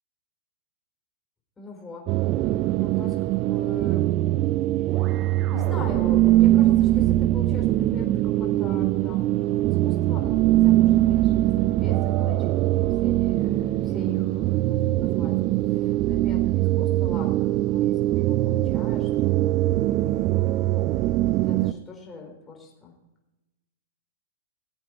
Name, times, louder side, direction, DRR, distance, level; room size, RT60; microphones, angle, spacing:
voice 1, 1.6-2.1 2.8-4.1 4.8-19.8 20.2-20.7 21.5-22.9, left 4 dB, 15° left, 0 dB, 4.3 m, -42 dB
sound 1, 2.1-21.7, right 15 dB, 35° right, 0.4 m, -22 dB
21.0 x 8.1 x 4.6 m, 1.0 s
hypercardioid pair, 140°, 0 cm